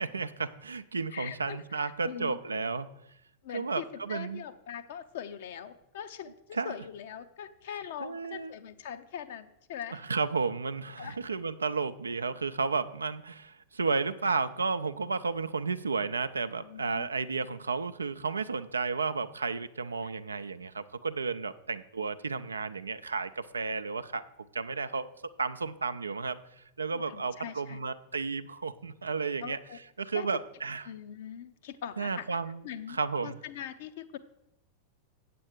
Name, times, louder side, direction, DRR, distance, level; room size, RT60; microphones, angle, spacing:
voice 1, 0.0-2.9 3.5-4.4 6.6-6.7 8.0-8.5 9.9-24.2 24.5-25.1 25.4-26.4 26.8-29.6 30.0-30.9 32.0-32.6 32.9-33.4, right 4 dB, 75° right, 12 dB, 0.4 m, -32 dB
voice 2, 1.1-2.4 3.4-10.0 11.0-11.2 16.6-17.1 20.0-20.1 26.9-27.8 29.4-29.8 30.1-30.3 30.9-32.4 32.6-34.2, left 9 dB, 55° left, 10 dB, 0.7 m, -42 dB
7.9 x 7.6 x 5.9 m, 0.82 s
figure-of-eight pair, 90°, 0 cm